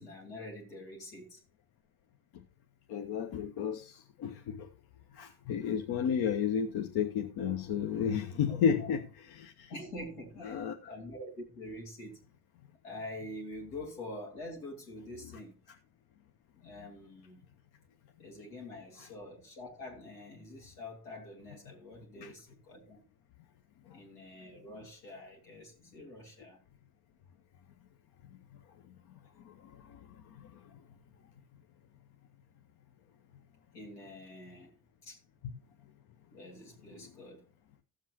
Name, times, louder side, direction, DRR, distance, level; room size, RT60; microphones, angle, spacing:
voice 1, 0.0-1.4 8.5-9.0 9.7-12.2 12.8-15.6 16.5-17.4 18.2-23.0 23.9-26.6 33.7-34.8 35.0-35.2 36.3-37.4, left 1 dB, 75° left, 2.3 m, -46 dB
voice 2, 2.9-3.9 4.2-4.7 5.2-9.7 10.4-10.9 22.2-22.3, left 7 dB, 55° left, 0.9 m, -32 dB
15.0 x 7.4 x 2.9 m
figure-of-eight pair, 40°, 46 cm